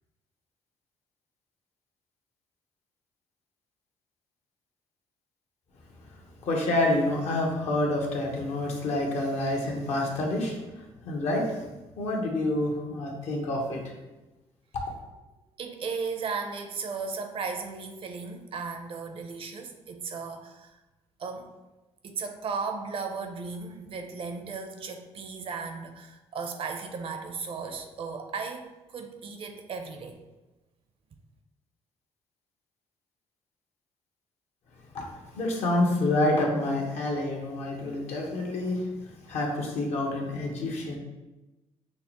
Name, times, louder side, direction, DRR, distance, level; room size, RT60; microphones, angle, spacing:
voice 1, 6.4-11.6 11.9-13.8 34.9-41.0, left 1 dB, 70° left, 0 dB, 1.0 m, -28 dB
voice 2, 15.6-20.7 21.2-21.5 22.0-30.2, right 5 dB, 50° right, 5 dB, 0.6 m, -36 dB
5.6 x 2.1 x 2.9 m, 1.1 s
supercardioid pair, 75°, 12 cm